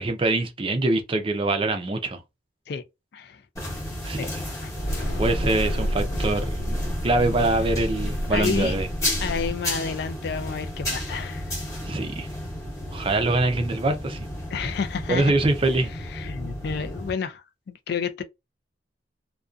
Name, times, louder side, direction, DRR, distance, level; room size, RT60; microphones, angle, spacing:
voice 1, 0.0-2.2 4.0-4.2 5.2-6.7 7.0-8.9 11.8-12.3 12.9-14.2 15.1-15.9, right 2 dB, 25° right, 0.4 m, -24 dB
voice 2, 3.1-3.8 4.2-4.3 4.6-5.1 8.3-8.8 9.2-11.5 14.5-15.3 16.1-18.2, left 6 dB, 55° left, 0.3 m, -31 dB
sound 1, 3.6-17.1, left 1 dB, 15° left, 0.9 m, -33 dB
sound 2, 4.7-9.5, equal, 85° left, 0.8 m, -29 dB
2.5 x 2.2 x 2.3 m
head